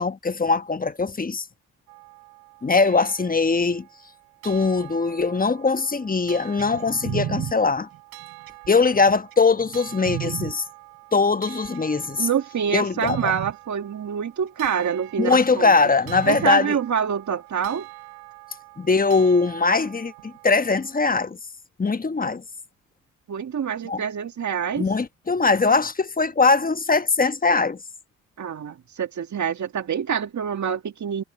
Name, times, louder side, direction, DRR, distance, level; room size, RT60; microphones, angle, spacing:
voice 1, 0.0-1.4 2.6-3.8 4.4-7.9 8.7-10.6 11.1-12.3 12.7-13.3 15.2-16.8 18.8-21.4 21.8-22.4 23.9-24.0 24.8-27.8, left 4 dB, 25° left, 1.1 m, -21 dB
sound 1, 1.9-21.3, right 32 dB, 90° right, 7.8 m, -45 dB
sound 2, 6.6-10.5 11.5-12.1 12.6-12.7 13.1-13.5 14.6-14.7 16.1-16.5 17.7-17.8, right 10 dB, 70° right, 4.8 m, -33 dB
voice 2, 12.2-15.7 16.3-17.9 23.3-24.9 28.4-31.2, right 8 dB, 50° right, 1.9 m, -26 dB
hypercardioid pair, 50°, 37 cm